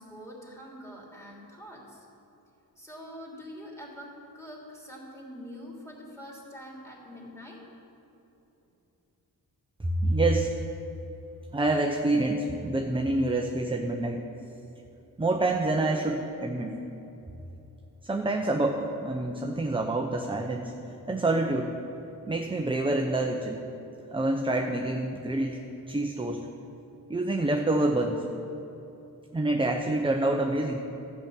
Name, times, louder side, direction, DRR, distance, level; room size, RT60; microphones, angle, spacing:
voice 1, 0.0-2.0 2.8-7.6, equal, 10° left, -4 dB, 3.1 m, -45 dB
voice 2, 9.8-10.5 11.5-14.2 15.2-16.8 18.0-20.7 21.1-21.7 22.3-23.6 24.1-26.5 27.1-28.2 29.3-30.8, right 2 dB, 15° right, 2 dB, 0.8 m, -27 dB
12.0 x 6.0 x 8.4 m, 3.0 s
cardioid pair, 85°, 37 cm